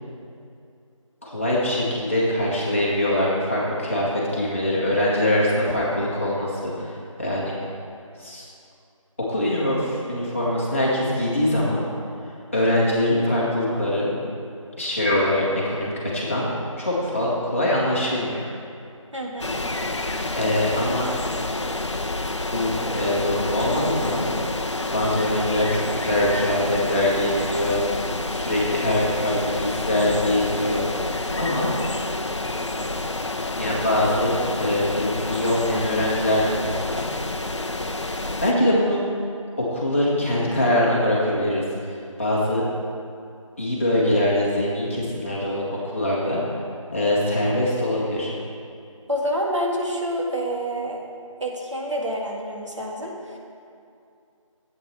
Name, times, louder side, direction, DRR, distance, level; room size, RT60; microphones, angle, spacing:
voice 1, 1.2-6.9 7.2-7.5 8.2-8.5 9.3-11.9 12.5-14.1 14.8-16.5 16.8-18.4 20.4-21.1 22.5-24.3 24.9-28.0 28.3-30.8 31.3-31.7 33.5-37.1 38.4-39.0 39.7-41.6 42.2-42.7 43.6-46.4 46.9-48.3, left 1 dB, 25° left, -7 dB, 1.6 m, -23 dB
voice 2, 19.1-19.6 49.1-51.0 51.4-53.4, equal, 60° right, -1 dB, 1.8 m, -27 dB
sound 1, 19.4-38.5, left 2 dB, 55° left, 0.7 m, -28 dB
11.5 x 8.5 x 4.4 m, 2.5 s
figure-of-eight pair, 175°, 17 cm